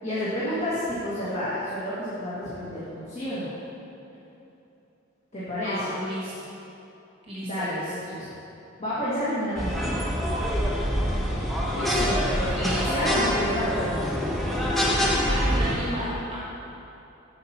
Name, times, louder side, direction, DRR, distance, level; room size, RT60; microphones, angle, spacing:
voice 1, 0.0-3.5 5.3-5.9 7.4-8.3 8.8-9.9 11.7-14.1, equal, 30° left, -11 dB, 1.7 m, -30 dB
voice 2, 5.6-6.3 7.3-7.7 12.5-13.2 15.0-16.4, equal, 25° right, -6 dB, 1.2 m, -33 dB
sound 1, 9.6-15.8, equal, ahead, 0.8 m, -25 dB
8.0 x 7.1 x 4.3 m, 2.9 s
head